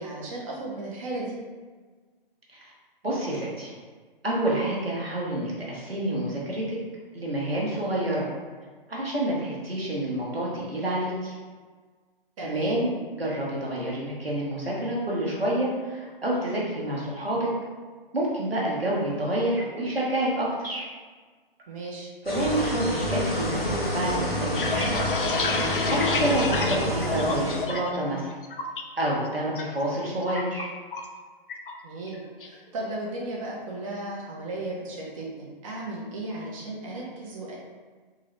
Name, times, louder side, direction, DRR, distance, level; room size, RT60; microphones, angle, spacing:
voice 1, 0.0-1.4 12.4-12.8 21.7-22.1 31.8-37.5, right 2 dB, 35° right, -4 dB, 0.7 m, -35 dB
voice 2, 3.0-3.7 4.2-6.8 7.1-8.3 8.9-11.3 12.4-12.9 13.2-17.5 18.1-20.8 22.2-25.1 25.8-28.3 29.0-30.7, right 1 dB, 85° right, -4 dB, 1.2 m, -28 dB
sound 1, 22.2-27.6, equal, 85° left, 1.1 m, -30 dB
Acoustic guitar, 22.3-27.5, equal, 10° left, 0.6 m, -32 dB
sound 2, 24.3-28.0 28.3-28.8 29.2-29.6 29.9-31.2 31.5-31.7 32.1-32.5, left 4 dB, 65° left, 0.5 m, -29 dB
3.8 x 2.7 x 3.1 m, 1.4 s
figure-of-eight pair, 125°, 29 cm